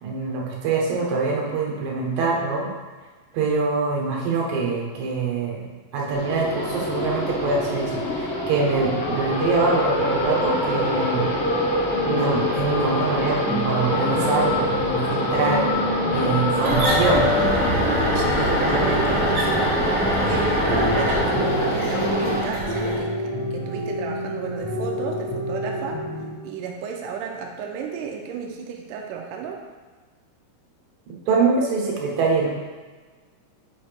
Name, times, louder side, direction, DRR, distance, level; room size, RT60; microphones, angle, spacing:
voice 1, 0.0-2.7 3.3-5.7 5.9-11.3 12.0-15.6 16.1-17.3 31.3-32.5, right 4 dB, 65° right, -2 dB, 2.7 m, -24 dB
sound 1, 6.1-22.4, left 1 dB, 80° left, 1.3 m, -25 dB
sound 2, 11.9-26.3, left 2 dB, 15° left, 0.7 m, -29 dB
sound 3, 16.6-23.0, right 1 dB, 50° right, 1.5 m, -24 dB
voice 2, 18.2-19.8 20.2-26.0 26.4-29.6, right 6 dB, 85° right, 1 dB, 1.9 m, -33 dB
8.0 x 5.7 x 3.4 m, 1.3 s
omnidirectional pair, 4.7 m